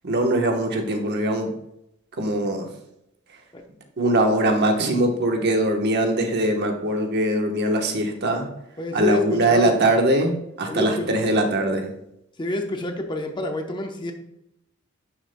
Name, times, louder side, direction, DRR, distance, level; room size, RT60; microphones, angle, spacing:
voice 1, 0.0-1.5 2.2-2.7 4.0-8.5 8.9-11.9, right 1 dB, 50° right, 3 dB, 1.1 m, -21 dB
voice 2, 8.8-9.8 10.6-11.1 12.4-14.1, left 1 dB, 20° left, 4 dB, 0.8 m, -28 dB
11.0 x 6.5 x 2.2 m, 0.80 s
head